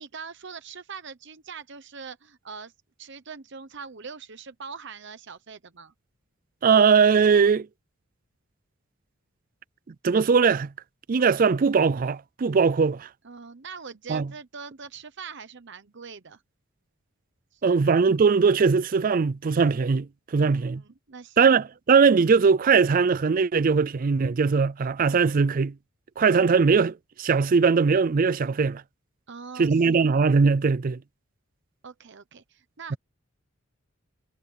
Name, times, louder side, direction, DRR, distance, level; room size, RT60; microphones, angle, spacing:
voice 1, 0.0-2.7 3.0-5.9 13.2-16.4 17.5-17.6 20.4-21.6 29.3-30.0 31.8-33.0, right 5 dB, 60° right, 0.9 m, -42 dB
voice 2, 6.6-7.7 10.0-10.7 11.1-13.1 14.1-14.3 17.6-20.8 21.4-25.7 26.2-28.8 29.6-31.0, right 5 dB, 40° right, 0.4 m, -20 dB
head